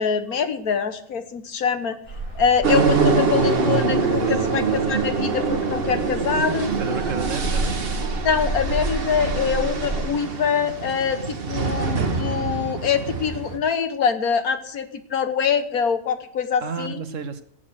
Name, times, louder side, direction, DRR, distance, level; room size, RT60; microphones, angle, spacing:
voice 1, 0.0-2.0 2.3-6.7 8.2-17.0, left 6 dB, 70° left, 9 dB, 1.5 m, -24 dB
sound 1, 2.0-10.0, right 2 dB, 20° left, 6.2 m, -31 dB
sound 2, 2.6-13.6, right 4 dB, 40° right, 1.3 m, -24 dB
voice 2, 4.2-4.5 6.8-7.8 16.6-17.4, right 6 dB, 60° right, 10 dB, 1.1 m, -31 dB
18.0 x 7.6 x 6.3 m, 0.67 s
omnidirectional pair, 1.7 m